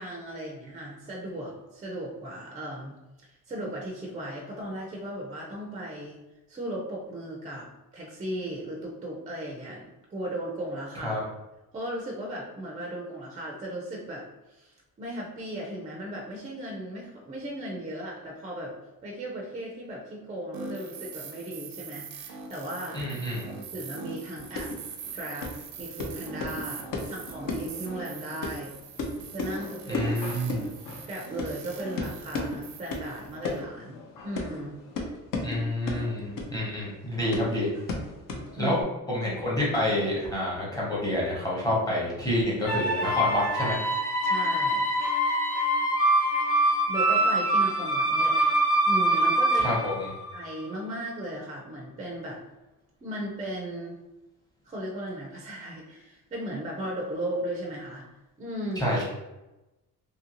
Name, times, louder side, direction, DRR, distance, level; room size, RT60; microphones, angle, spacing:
voice 1, 0.0-2.9 3.3-6.2 6.5-7.7 7.9-9.8 10.1-11.2 11.7-18.7 19.0-23.0 23.5-24.7 25.0-25.5 25.8-28.7 29.3-30.1 31.1-34.8 37.2-37.3 38.6-38.8 44.2-44.9 46.6-48.4 48.8-49.8 50.3-52.4 53.0-54.0 54.7-58.1 58.4-58.8, right 1 dB, 25° right, -1 dB, 0.4 m, -36 dB
sound 1, 20.5-33.6, right 5 dB, 85° right, 0.5 m, -42 dB
voice 2, 22.9-23.5 29.9-30.6 35.4-37.7 38.3-38.8 39.1-43.8 49.6-50.1 58.8-59.0, left 1 dB, 10° left, -6 dB, 0.8 m, -28 dB
sound 2, 24.4-38.8, left 2 dB, 70° left, 0.6 m, -36 dB
sound 3, 42.7-50.6, right 1 dB, 40° left, 1.0 m, -24 dB
2.7 x 2.6 x 2.8 m, 1.0 s
wide cardioid pair, 175°, 34 cm